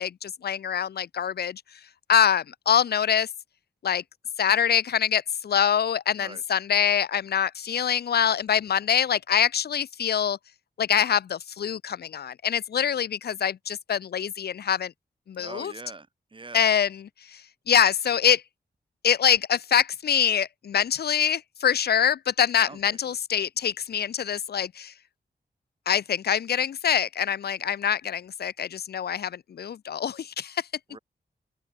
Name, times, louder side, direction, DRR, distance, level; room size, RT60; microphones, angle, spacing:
voice 1, 0.0-1.6 2.1-3.3 3.8-4.0 4.4-10.4 10.8-14.9 15.3-15.7 16.5-17.4 17.7-18.4 19.0-24.9 25.9-30.7, left 8 dB, 75° left, 0.7 m, -24 dB
voice 2, 15.4-16.6 22.6-23.2 30.9-31.0, right 3 dB, 30° right, 6.4 m, -43 dB
open air
wide cardioid pair, 155°, 17 cm